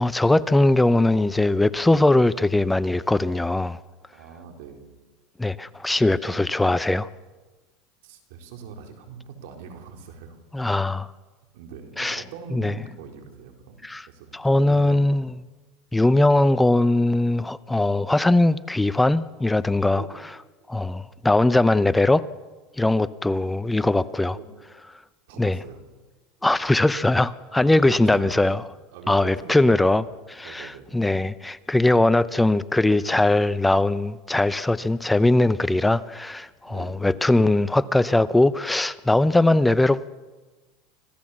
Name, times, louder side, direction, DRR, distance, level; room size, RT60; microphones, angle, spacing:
voice 1, 0.0-3.8 5.4-7.1 10.5-11.1 12.0-12.2 12.5-12.7 13.8-14.1 14.3-15.3 15.9-20.0 20.7-22.3 22.8-24.4 25.4-25.6 26.4-28.6 29.1-40.1, left 2 dB, 5° left, 16 dB, 0.6 m, -20 dB
voice 2, 4.1-4.9 6.0-6.4 8.0-10.4 11.5-13.8 14.1-15.2 19.9-20.1 24.3-24.5 25.3-25.9 27.5-28.6 28.9-30.2 30.4-31.0 36.7-37.2, right 6 dB, 75° right, 4 dB, 4.1 m, -42 dB
26.0 x 16.0 x 7.4 m, 1.3 s
supercardioid pair, 115°, 0 cm